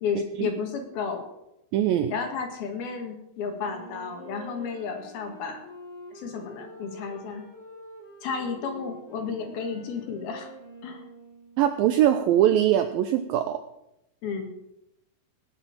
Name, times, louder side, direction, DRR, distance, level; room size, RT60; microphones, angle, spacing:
voice 1, 0.0-1.2 2.1-5.6 6.1-7.5 8.2-10.5 10.8-11.0 14.2-14.5, left 5 dB, 65° left, 4 dB, 3.7 m, -32 dB
voice 2, 1.7-2.1 11.6-13.6, right 11 dB, 85° right, 9 dB, 2.0 m, -22 dB
Wind instrument woodwind instrument, 3.6-12.1, right 1 dB, 20° left, 2.0 m, -47 dB
19.0 x 6.8 x 7.4 m, 0.84 s
omnidirectional pair, 4.9 m